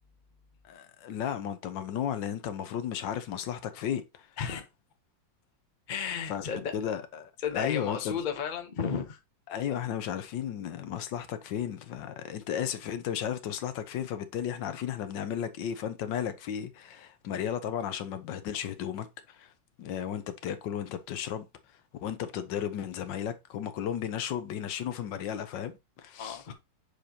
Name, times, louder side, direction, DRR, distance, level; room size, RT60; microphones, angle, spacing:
voice 1, 0.6-4.3 6.3-6.5 6.7-8.2 9.5-19.5 19.8-21.5 22.0-26.4, left 9 dB, 70° left, 1.4 m, -34 dB
voice 2, 5.9-6.7 7.4-9.2 26.2-26.5, left 7 dB, 45° left, 0.6 m, -33 dB
6.4 x 5.0 x 2.9 m
omnidirectional pair, 2.1 m